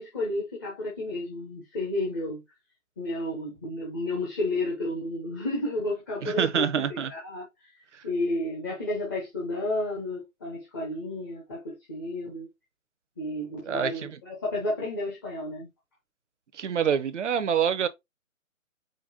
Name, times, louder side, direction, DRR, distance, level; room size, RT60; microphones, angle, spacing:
voice 1, 0.0-2.4 3.0-7.7 8.0-12.5 13.2-15.7, left 1 dB, 15° left, 0.7 m, -32 dB
voice 2, 6.2-7.1 7.9-8.0 13.6-14.2 16.5-17.9, right 8 dB, 60° right, 0.7 m, -26 dB
5.2 x 2.2 x 3.9 m
figure-of-eight pair, 150°, 40 cm